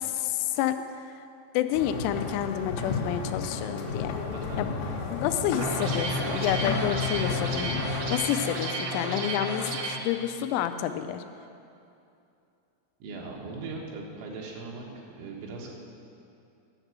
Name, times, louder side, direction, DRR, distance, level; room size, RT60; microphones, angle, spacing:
voice 1, 0.2-0.8 1.5-4.1 4.6-4.7 5.1-11.2, left 10 dB, 90° left, 9 dB, 3.1 m, -29 dB
sound 1, 1.7-8.1, left 4 dB, 75° left, 3.0 m, -32 dB
voice 2, 4.3-4.7 13.0-14.9 15.1-15.8, right 3 dB, 85° right, -1 dB, 3.9 m, -39 dB
sound 2, 5.6-10.0, right 1 dB, 65° right, 1.9 m, -31 dB
11.5 x 6.0 x 8.0 m, 2.6 s
omnidirectional pair, 5.5 m